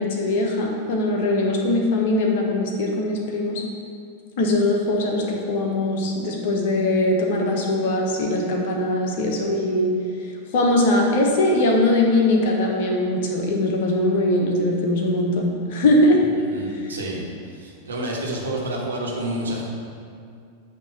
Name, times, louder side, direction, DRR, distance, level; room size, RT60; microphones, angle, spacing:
voice 1, 0.0-3.6 4.4-9.9 10.5-16.2 16.7-16.8, left 1 dB, 50° left, 0 dB, 1.1 m, -21 dB
voice 2, 16.3-17.3 17.5-19.6, right 1 dB, 70° right, -3 dB, 1.4 m, -29 dB
8.8 x 3.1 x 6.5 m, 2.3 s
figure-of-eight pair, 90°, 0 cm